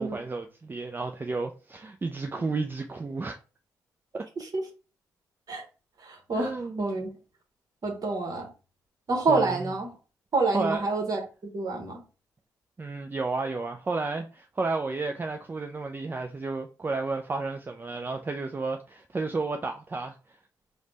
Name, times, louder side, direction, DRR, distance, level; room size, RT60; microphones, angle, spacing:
voice 1, 0.0-3.4 4.1-4.2 6.3-6.8 9.3-9.6 10.5-10.9 12.8-20.1, right 3 dB, 25° right, 0.4 m, -32 dB
voice 2, 6.0-6.5 6.8-7.1 7.8-8.5 9.1-9.9 10.3-11.2 11.5-12.0, right 3 dB, 50° right, 1.0 m, -27 dB
3.2 x 2.1 x 3.9 m
hypercardioid pair, 45°, 8 cm